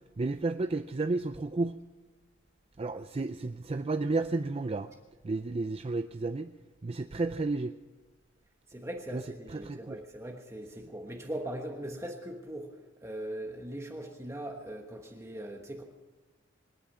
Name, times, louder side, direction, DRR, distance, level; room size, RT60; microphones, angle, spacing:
voice 1, 0.2-1.8 2.8-4.9 5.2-6.5 6.8-7.7 9.1-9.2 9.5-10.0, right 3 dB, 30° right, 9 dB, 0.4 m, -32 dB
voice 2, 8.7-12.7 13.0-15.8, right 1 dB, 15° right, 2 dB, 1.3 m, -40 dB
25.5 x 9.7 x 5.6 m, 1.2 s
head